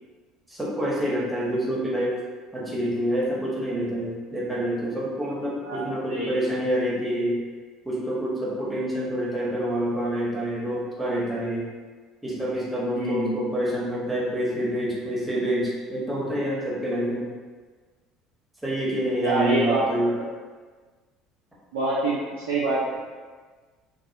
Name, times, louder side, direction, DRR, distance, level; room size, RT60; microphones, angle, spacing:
voice 1, 0.5-2.2 2.5-7.4 7.8-11.7 12.2-17.3 18.6-20.1, equal, 10° right, -6 dB, 0.8 m, -27 dB
voice 2, 12.9-13.4 19.2-20.1 21.7-23.0, right 2 dB, 85° right, -8 dB, 0.4 m, -26 dB
2.3 x 2.0 x 2.6 m, 1.4 s
hypercardioid pair, 65°, 0 cm